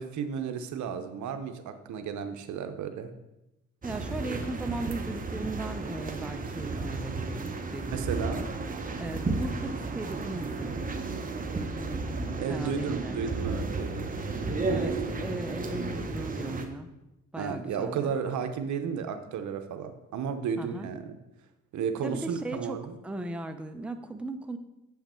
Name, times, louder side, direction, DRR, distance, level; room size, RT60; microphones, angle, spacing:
voice 1, 0.0-3.1 7.9-8.4 12.4-14.1 17.4-21.1 21.7-22.9, right 7 dB, 70° right, 8 dB, 0.8 m, -33 dB
voice 2, 3.8-8.5 9.0-11.1 11.5-13.2 14.7-16.9 17.3-18.2 20.6-20.9 22.0-24.6, right 2 dB, 5° right, 7 dB, 0.5 m, -37 dB
sound 1, 3.8-16.6, right 3 dB, 30° right, 0.9 m, -33 dB
7.5 x 5.7 x 4.4 m, 0.95 s
cardioid pair, 90°, 30 cm